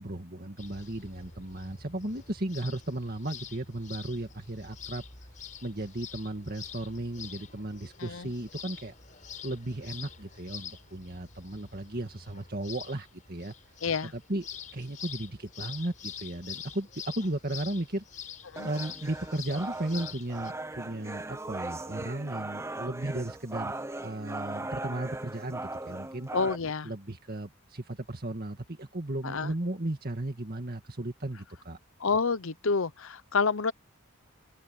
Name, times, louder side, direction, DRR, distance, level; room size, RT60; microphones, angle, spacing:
voice 1, 0.0-5.0 5.6-8.9 9.4-13.5 14.0-14.5 14.7-18.0 18.6-23.7 24.0-26.3 26.8-31.8, right 1 dB, 40° right, 2.0 m, -35 dB
sound 1, 0.6-20.5, left 7 dB, 35° left, 6.1 m, -46 dB
voice 2, 8.0-8.3 13.8-14.1 18.5-18.7 26.3-26.9 29.2-29.5 32.0-33.7, left 4 dB, 65° left, 0.8 m, -28 dB
sound 2, 18.6-26.6, right 2 dB, 10° right, 0.6 m, -38 dB
open air
head